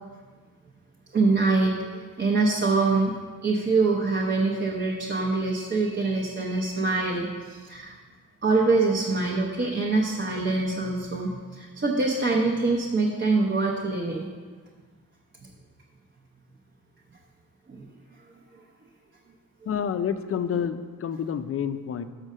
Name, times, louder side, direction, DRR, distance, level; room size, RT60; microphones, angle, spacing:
voice 1, 1.1-3.1 3.4-8.0 8.4-14.3 17.7-17.8, right 3 dB, 35° right, -2 dB, 0.8 m, -24 dB
voice 2, 19.7-22.0, left 8 dB, 40° left, 11 dB, 0.4 m, -28 dB
6.4 x 6.1 x 6.5 m, 1.5 s
wide cardioid pair, 140°, 35 cm